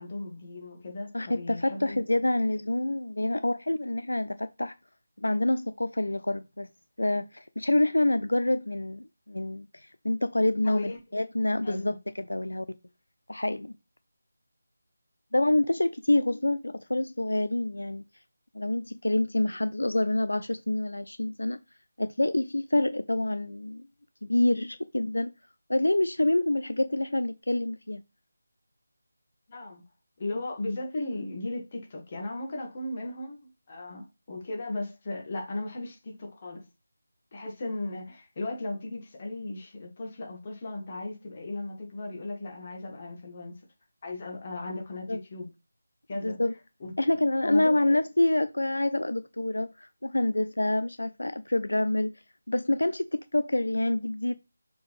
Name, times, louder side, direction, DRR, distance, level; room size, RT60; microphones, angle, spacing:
voice 1, 0.0-2.0 10.6-11.0 11.6-12.0 29.5-29.8 30.2-33.4 33.7-36.6 37.3-43.6 44.0-45.5 46.1-46.4 46.8-46.9 47.4-48.0, left 2 dB, 30° left, 1.9 m, -36 dB
voice 2, 1.1-4.8 5.2-6.7 7.0-12.7 13.3-13.7 15.3-18.0 18.5-21.6 22.0-23.9 24.2-25.3 25.7-28.0 45.1-45.2 46.2-46.5 47.0-52.2 52.5-54.3, left 1 dB, 65° left, 0.4 m, -27 dB
6.5 x 4.5 x 3.4 m
figure-of-eight pair, 160°, 0 cm